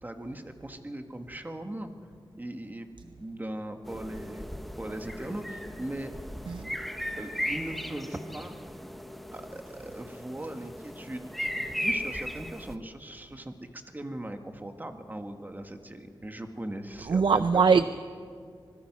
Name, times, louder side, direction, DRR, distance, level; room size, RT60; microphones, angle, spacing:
voice 1, 0.0-1.9 2.3-4.5 4.7-6.1 7.2-8.5 9.3-11.2 11.5-17.8, right 1 dB, 20° right, 6 dB, 1.7 m, -39 dB
sound 1, 3.9-12.8, equal, ahead, 1.0 m, -37 dB
voice 2, 17.1-17.8, right 5 dB, 65° right, 12 dB, 0.6 m, -21 dB
25.5 x 21.0 x 6.1 m, 2.2 s
wide cardioid pair, 90°, 9 cm